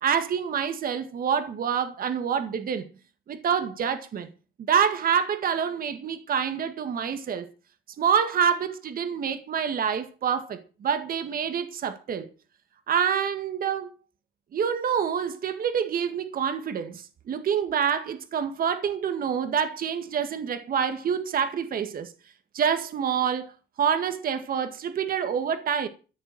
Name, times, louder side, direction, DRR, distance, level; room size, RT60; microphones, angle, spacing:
voice 1, 0.0-2.9 3.3-4.3 4.7-7.5 8.0-12.3 12.9-13.9 14.5-22.1 22.5-23.5 23.8-25.9, right 7 dB, 45° right, 1.9 m, -27 dB
14.5 x 7.0 x 9.1 m
cardioid pair, 120°, 21 cm